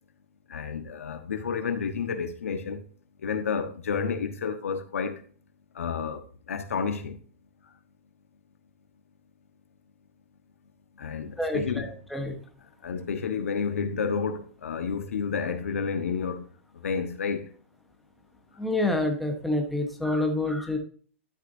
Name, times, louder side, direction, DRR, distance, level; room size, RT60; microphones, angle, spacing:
voice 1, 0.5-2.8 3.2-5.2 5.7-7.2 11.0-11.9 12.8-16.5 16.8-17.5, left 6 dB, 90° left, 1.4 m, -30 dB
voice 2, 11.4-12.4 18.6-20.8, left 2 dB, ahead, 1.2 m, -27 dB
12.0 x 6.0 x 2.8 m
hypercardioid pair, 155°, 7 cm